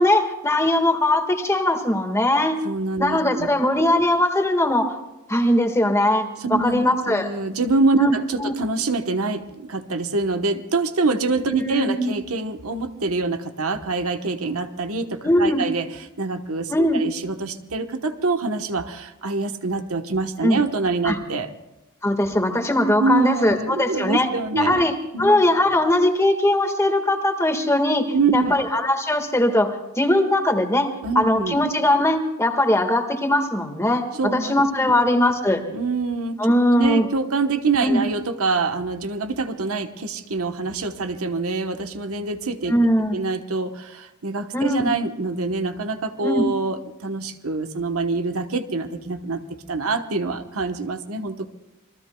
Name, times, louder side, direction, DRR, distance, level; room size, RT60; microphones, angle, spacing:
voice 1, 0.0-2.6 3.0-5.0 5.3-7.3 8.0-8.5 11.5-12.1 15.2-15.6 16.7-17.0 20.4-20.6 21.0-21.2 22.0-24.3 24.6-35.6 36.4-37.1 37.8-38.0 42.7-43.2 44.5-44.9 46.2-46.4, left 1 dB, 15° left, 4 dB, 1.7 m, -20 dB
voice 2, 2.6-3.5 6.4-15.9 16.2-21.5 23.0-24.8 25.1-25.4 28.1-28.6 31.0-31.6 34.2-34.5 34.9-35.0 35.7-36.4 36.7-42.7 43.1-49.4 49.7-51.5, right 3 dB, 75° right, 7 dB, 1.1 m, -25 dB
28.0 x 22.0 x 2.3 m, 0.95 s
head